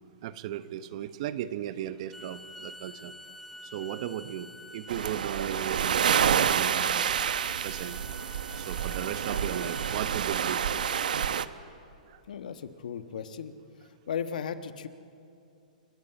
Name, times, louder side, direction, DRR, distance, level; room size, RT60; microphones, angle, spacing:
voice 1, 0.2-3.1 3.6-10.6 12.1-12.2, right 11 dB, 50° right, 12 dB, 1.0 m, -37 dB
Bowed string instrument, 2.0-10.0, equal, ahead, 0.8 m, -48 dB
sound 1, 4.9-11.5, right 8 dB, 80° right, 0.8 m, -28 dB
voice 2, 12.3-13.5 14.1-14.9, left 7 dB, 75° left, 10 dB, 1.3 m, -35 dB
29.0 x 11.5 x 8.8 m, 2.6 s
hypercardioid pair, 140°, 4 cm